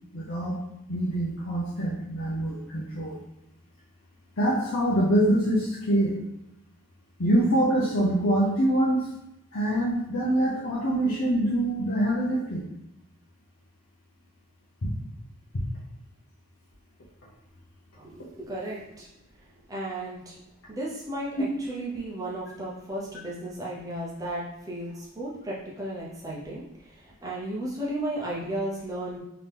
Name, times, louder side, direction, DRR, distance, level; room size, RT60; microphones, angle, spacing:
voice 1, 0.1-0.6 0.9-3.2 4.4-6.2 7.2-9.1 9.5-12.7 14.8-14.9, right 1 dB, 75° left, -8 dB, 0.8 m, -25 dB
voice 2, 18.0-19.1 19.7-20.4 20.7-21.3 21.7-26.6 27.2-29.2, right 1 dB, 15° right, -5 dB, 0.7 m, -34 dB
3.7 x 2.8 x 3.4 m, 0.84 s
head